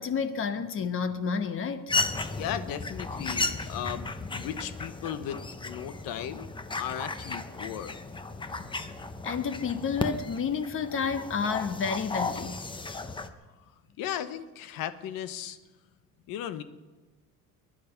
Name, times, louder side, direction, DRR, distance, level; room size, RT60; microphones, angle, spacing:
voice 1, 0.0-1.9 8.6-8.9 9.2-12.6, left 6 dB, 40° left, 1.1 m, -30 dB
sound 1, 1.9-13.3, left 3 dB, 15° left, 0.8 m, -35 dB
voice 2, 2.4-6.5 6.8-8.0 14.0-15.6 16.3-16.6, left 10 dB, 85° left, 1.1 m, -36 dB
21.5 x 10.5 x 5.8 m
cardioid pair, 145°, 34 cm